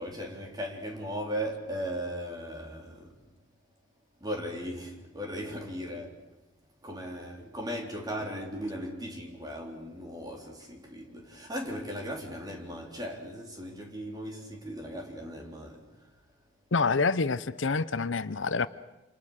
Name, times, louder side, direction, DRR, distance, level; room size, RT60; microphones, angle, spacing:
voice 1, 0.0-3.2 4.2-6.2 6.8-16.1, equal, 20° right, 4.0 m, -37 dB
voice 2, 16.7-18.7, left 4 dB, 75° left, 0.8 m, -27 dB
28.0 x 27.5 x 6.6 m
head